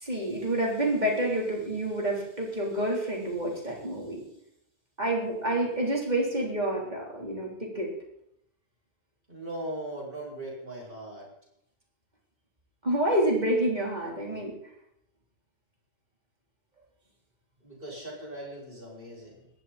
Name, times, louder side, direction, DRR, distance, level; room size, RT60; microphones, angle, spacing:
voice 1, 0.0-4.2 5.0-7.9 12.8-14.5, right 1 dB, 40° right, -2 dB, 4.2 m, -28 dB
voice 2, 9.3-11.3 17.6-19.5, right 1 dB, 55° right, -4 dB, 8.1 m, -39 dB
21.0 x 15.5 x 4.4 m, 0.78 s
omnidirectional pair, 1.1 m